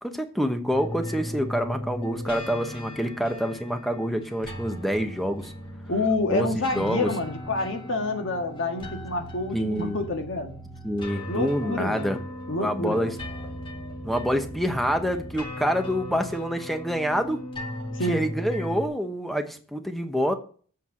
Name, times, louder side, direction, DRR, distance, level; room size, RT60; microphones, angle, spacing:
voice 1, 0.0-5.5 6.3-7.1 9.5-10.0 10.8-12.2 12.6-13.2 14.0-17.4 18.0-20.3, equal, ahead, 6 dB, 0.9 m, -27 dB
sound 1, 0.7-18.9, left 1 dB, 25° left, 1.7 m, -37 dB
voice 2, 5.9-10.5 11.3-12.2 12.5-13.1 17.9-18.3, left 2 dB, 60° left, 4 dB, 1.6 m, -28 dB
7.9 x 4.6 x 7.2 m, 0.42 s
head